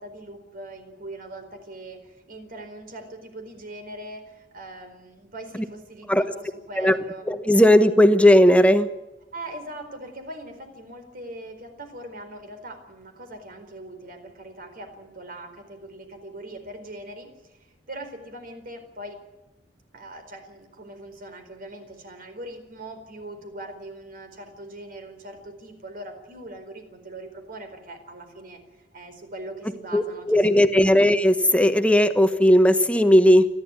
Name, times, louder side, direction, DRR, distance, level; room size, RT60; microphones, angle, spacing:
voice 1, 0.0-7.3 9.3-17.3 17.9-19.2 19.9-30.9, right 1 dB, 50° right, 7 dB, 4.5 m, -41 dB
voice 2, 7.3-8.9 29.9-33.5, equal, 5° left, 9 dB, 1.3 m, -17 dB
29.0 x 11.5 x 9.7 m, 0.96 s
head